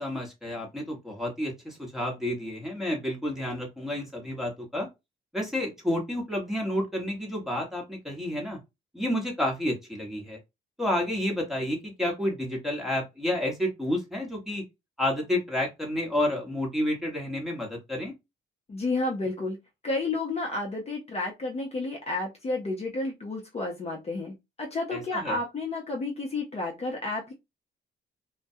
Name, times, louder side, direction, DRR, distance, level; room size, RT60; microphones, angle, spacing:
voice 1, 0.0-4.9 5.3-8.6 8.9-10.4 10.8-14.6 15.0-18.1 24.9-25.4, left 1 dB, ahead, 1.1 m, -30 dB
voice 2, 18.7-19.6 19.8-27.3, left 2 dB, 30° left, 0.7 m, -31 dB
2.2 x 2.2 x 2.6 m
cardioid pair, 90°, 20 cm